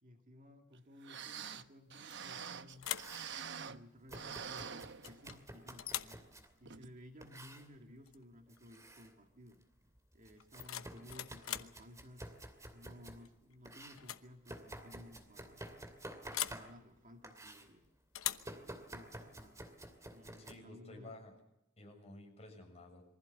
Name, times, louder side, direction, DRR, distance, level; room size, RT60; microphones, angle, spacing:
voice 1, 0.0-2.9 3.6-4.7 5.0-6.2 6.6-9.6 10.1-12.3 12.7-15.7 16.5-17.9 18.4-19.6 20.1-21.1, left 1 dB, 40° right, 4 dB, 2.1 m, -57 dB
sound 1, 0.7-3.9 4.1-5.5 5.9-6.0 6.7-6.9 7.3-7.4, right 7 dB, 60° right, 1.0 m, -46 dB
sound 2, 2.1-2.4 2.8-3.2 5.0-5.4 5.8-6.2 8.1-8.2 8.6-8.9 10.4-11.8 13.2-13.5 13.9-14.3 14.5-14.6 16.3-16.7 18.1-18.5, left 12 dB, 80° left, 1.0 m, -41 dB
Domestic sounds home sounds, 2.6-3.4 4.1-6.5 7.2-7.7 8.5-9.1 9.5-13.2 13.6-17.0 17.2-17.7 18.4-20.5, right 1 dB, 15° right, 2.6 m, -51 dB
voice 2, 20.4-21.3 21.8-23.0, left 2 dB, 30° left, 2 dB, 6.9 m, -53 dB
23.5 x 15.5 x 8.3 m, 0.85 s
head